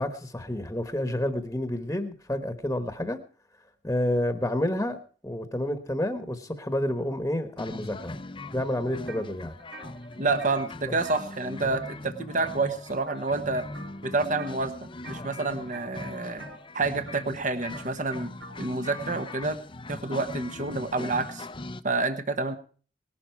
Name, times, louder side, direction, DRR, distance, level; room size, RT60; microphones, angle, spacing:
voice 1, 0.0-3.2 3.8-5.0 5.2-8.1 8.5-9.5 10.9-11.0 11.6-11.8, left 1 dB, 15° left, 9 dB, 1.3 m, -29 dB
sound 1, 7.6-21.8, left 2 dB, 30° left, 0.7 m, -40 dB
sound 2, 9.1-9.3 9.6-12.1 12.4-12.8 13.1-13.4 13.7-14.6 15.0-15.3 15.7-19.3, right 2 dB, 85° right, 4.1 m, -47 dB
voice 2, 10.2-13.6 14.0-16.4 16.7-18.3 18.6-19.6 19.9-21.5 21.8-22.6, right 3 dB, 45° right, 10 dB, 1.2 m, -28 dB
19.5 x 12.0 x 4.6 m, 0.41 s
head